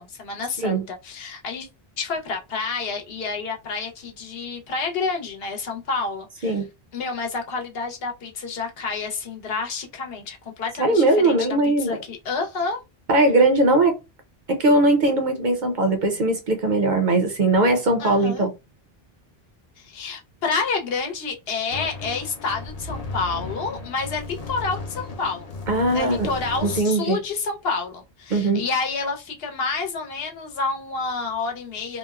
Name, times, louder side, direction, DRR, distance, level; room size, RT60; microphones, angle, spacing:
voice 1, 0.0-1.7 2.0-6.6 6.9-11.4 11.6-12.8 18.0-18.5 19.8-25.5 25.9-32.0, left 4 dB, 75° left, 0.9 m, -29 dB
voice 2, 10.8-12.0 13.1-14.0 14.5-18.5 25.7-26.3 26.6-27.2 28.3-28.6, right 2 dB, 55° right, 0.6 m, -20 dB
sound 1, 21.7-26.8, left 3 dB, 50° left, 0.5 m, -35 dB
2.9 x 2.0 x 2.3 m
omnidirectional pair, 1.0 m